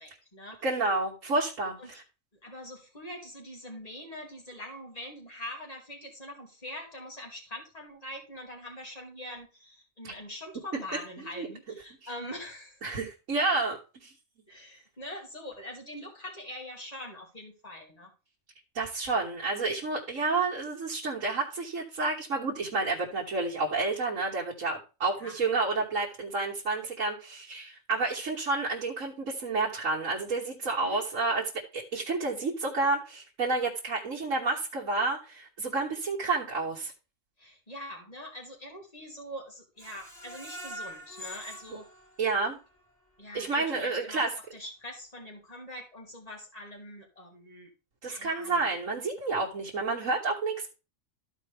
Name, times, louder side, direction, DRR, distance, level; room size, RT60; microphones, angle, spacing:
voice 1, 0.0-0.7 1.8-1.9 2.4-12.8 14.5-18.1 25.2-25.3 30.8-31.0 37.4-41.9 43.2-47.7 48.1-48.7, left 1 dB, 30° left, 0 dB, 2.6 m, -43 dB
voice 2, 0.6-2.0 10.0-10.1 11.4-11.5 12.8-14.1 18.8-36.9 42.2-42.6 43.3-44.3 48.0-50.7, right 3 dB, 70° right, -3 dB, 1.8 m, -30 dB
Screech, 39.8-42.8 43.2-43.3 43.7-43.8, equal, ahead, 2.9 m, -44 dB
13.5 x 4.8 x 3.4 m, 0.32 s
omnidirectional pair, 1.4 m